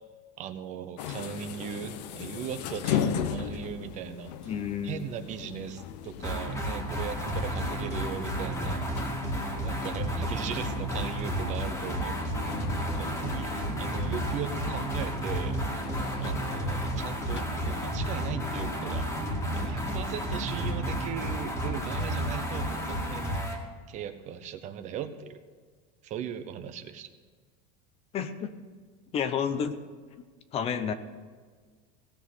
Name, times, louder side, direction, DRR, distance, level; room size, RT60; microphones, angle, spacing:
voice 1, 0.4-4.5 4.8-8.8 9.6-15.8 16.2-19.1 19.6-23.4 23.9-25.4 26.0-27.1, right 8 dB, 35° right, 10 dB, 0.8 m, -38 dB
sound 1, 1.0-17.4, left 9 dB, 85° left, 1.0 m, -38 dB
voice 2, 4.5-5.0 28.1-28.5 29.1-29.7 30.5-30.9, left 7 dB, 30° left, 11 dB, 0.8 m, -30 dB
sound 2, 6.2-23.6, equal, 15° left, 1.9 m, -31 dB
17.0 x 6.3 x 7.8 m, 1.5 s
supercardioid pair, 160°, 21 cm